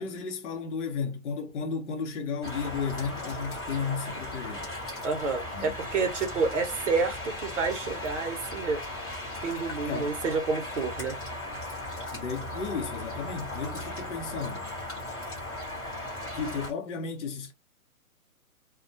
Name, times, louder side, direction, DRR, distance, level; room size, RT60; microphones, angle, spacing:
voice 1, 0.0-4.7 5.5-5.7 9.8-10.1 12.1-14.7 16.3-17.5, left 5 dB, 55° left, 0.8 m, -34 dB
sound 1, 2.4-16.7, left 1 dB, 10° left, 0.9 m, -37 dB
voice 2, 5.0-8.8 9.4-11.2, right 4 dB, 55° right, 0.7 m, -29 dB
2.2 x 2.1 x 2.6 m
hypercardioid pair, 150°, 43 cm